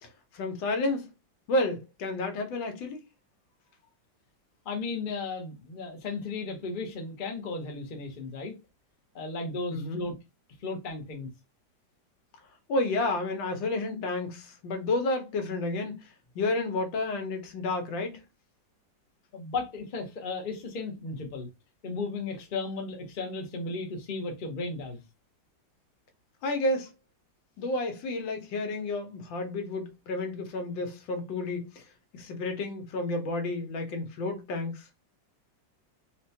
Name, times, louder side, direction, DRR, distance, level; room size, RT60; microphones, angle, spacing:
voice 1, 0.0-1.1 1.5-3.0 9.7-10.0 12.7-16.1 16.3-18.2 26.4-26.9 27.6-31.8 32.1-34.9, left 2 dB, 80° left, 1.5 m, -31 dB
voice 2, 4.6-8.5 9.1-10.1 10.6-11.3 19.3-21.5 21.8-25.0, left 3 dB, 60° left, 0.5 m, -35 dB
4.3 x 2.2 x 2.7 m
omnidirectional pair, 2.1 m